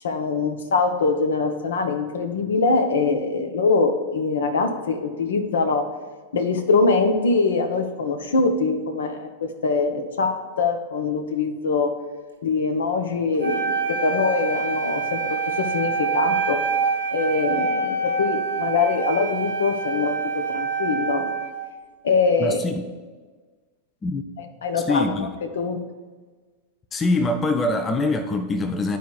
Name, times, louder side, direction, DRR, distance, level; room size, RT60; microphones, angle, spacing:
voice 1, 0.0-5.9 6.3-11.9 12.4-16.6 17.1-21.3 22.0-22.6 24.4-25.1 25.4-25.8, left 4 dB, 65° left, 6 dB, 0.7 m, -23 dB
Wind instrument woodwind instrument, 13.4-21.7, right 5 dB, 75° right, 1.0 m, -26 dB
voice 2, 22.4-22.8 24.0-24.2 24.8-25.3 26.9-29.0, left 2 dB, 20° left, 7 dB, 0.5 m, -23 dB
11.0 x 4.5 x 2.4 m, 1.4 s
figure-of-eight pair, 90°, 0 cm